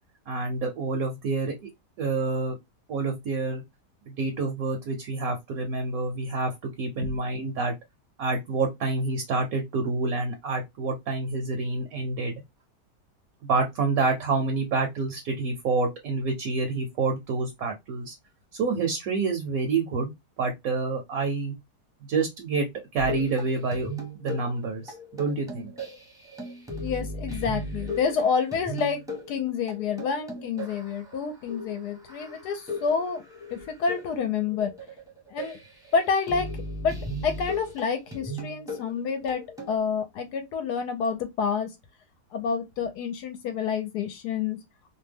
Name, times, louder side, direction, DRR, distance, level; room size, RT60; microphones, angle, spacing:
voice 1, 0.3-1.7 2.0-2.6 2.9-3.6 4.1-7.7 8.2-12.3 13.4-18.1 18.5-20.1 20.4-21.5 22.1-23.9 24.1-25.7, right 3 dB, 65° right, 1.0 m, -28 dB
sound 1, 23.0-39.7, equal, 5° right, 0.6 m, -37 dB
voice 2, 26.8-29.0 29.3-33.2 33.5-34.7 35.3-35.6 35.9-36.5 36.8-39.4 39.7-41.7 42.3-44.6, left 6 dB, 75° left, 1.1 m, -28 dB
2.8 x 2.2 x 3.3 m
omnidirectional pair, 1.8 m